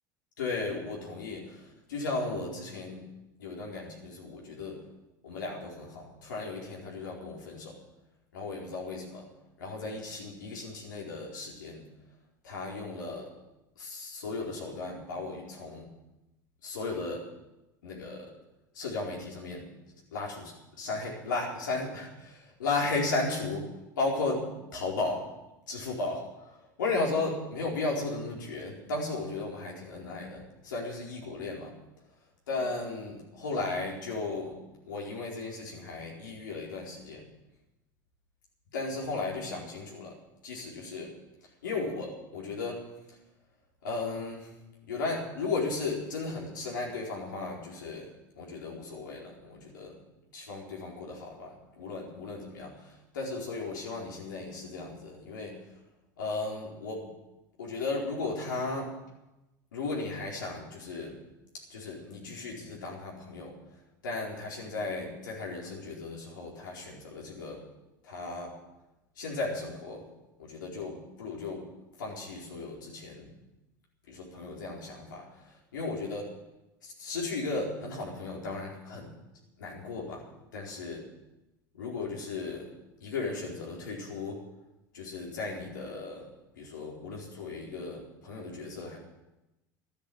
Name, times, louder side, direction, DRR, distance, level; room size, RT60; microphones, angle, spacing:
voice 1, 0.4-3.0 3.4-4.8 5.2-7.8 8.3-9.3 9.6-11.8 12.4-13.3 13.8-15.9 16.6-17.3 17.8-18.3 18.7-19.7 20.1-23.7 24.0-25.3 25.7-31.7 32.5-34.6 34.8-37.3 38.7-40.2 40.4-41.1 41.6-42.9 43.8-44.5 44.9-48.1 48.4-50.0 50.3-55.7 56.2-57.1 57.6-59.0 59.7-61.2 61.7-63.6 64.0-67.6 68.0-68.6 69.2-70.1 70.4-71.7 72.0-73.3 74.1-76.3 76.8-79.1 79.6-80.3 80.5-81.0 81.8-82.7 83.0-84.5 84.9-86.3 86.6-89.0, left 3 dB, 85° left, -3 dB, 4.5 m, -35 dB
12.0 x 11.5 x 8.5 m, 0.96 s
hypercardioid pair, 80°, 10 cm